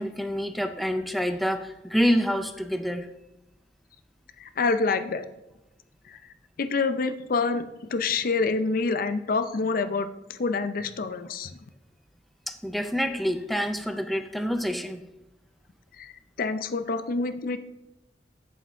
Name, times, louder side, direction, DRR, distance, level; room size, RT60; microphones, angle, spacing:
voice 1, 0.0-3.1 12.5-15.1, equal, ahead, 7 dB, 0.4 m, -27 dB
voice 2, 4.4-5.3 6.1-6.2 6.6-11.6 16.0-16.1 16.4-17.6, left 4 dB, 55° left, 11 dB, 0.5 m, -27 dB
8.5 x 7.3 x 3.4 m, 0.93 s
head